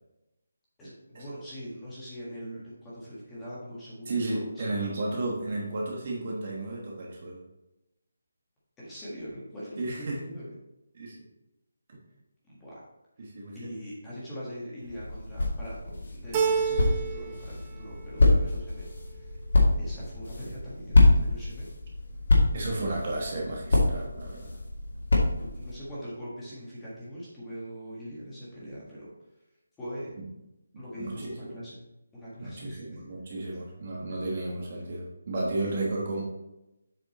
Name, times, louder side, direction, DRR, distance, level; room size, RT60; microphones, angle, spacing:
voice 1, 0.8-4.6 8.8-10.5 12.5-12.8 13.5-19.3 19.8-21.7 25.6-29.1 29.8-30.1 30.7-31.8 32.1-33.0, equal, 5° left, -9 dB, 1.5 m, -42 dB
voice 2, 4.1-7.4 9.8-10.3 10.9-11.2 11.9-12.0 13.2-13.7 22.5-24.6 30.2-30.3 30.7-31.6 32.4-36.2, right 2 dB, 30° right, -2 dB, 1.2 m, -33 dB
sound 1, 14.8-25.8, left 2 dB, 50° left, 2.0 m, -26 dB
Keyboard (musical), 16.3-17.4 17.8-18.5, right 6 dB, 15° right, 0.5 m, -29 dB
7.6 x 5.2 x 4.2 m, 0.94 s
hypercardioid pair, 180°, 0 cm